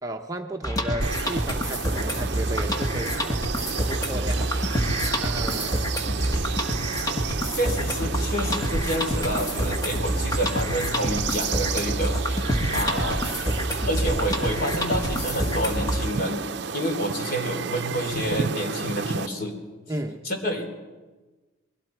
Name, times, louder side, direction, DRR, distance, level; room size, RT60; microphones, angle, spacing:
voice 1, 0.0-3.4 3.9-4.7 5.2-6.0 19.9-20.3, right 1 dB, 15° right, 3 dB, 0.8 m, -34 dB
sound 1, 0.6-16.1, equal, 20° left, 1.7 m, -27 dB
sound 2, 1.0-19.3, right 5 dB, 55° right, 0.6 m, -32 dB
voice 2, 7.6-12.4 12.7-13.2 13.8-16.4 16.7-19.5 20.2-20.7, equal, 45° left, 3 dB, 3.5 m, -28 dB
29.0 x 21.5 x 4.6 m, 1.3 s
head